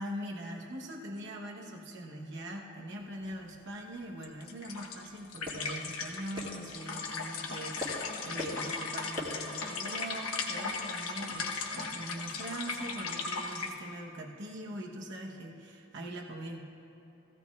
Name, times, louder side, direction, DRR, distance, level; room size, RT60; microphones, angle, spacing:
voice 1, 0.0-16.6, right 1 dB, 55° right, 0 dB, 1.0 m, -42 dB
sound 1, 2.9-11.8, left 1 dB, 25° right, 1.7 m, -46 dB
sound 2, 4.2-13.7, left 4 dB, 85° left, 1.1 m, -37 dB
18.0 x 15.0 x 2.4 m, 2.9 s
head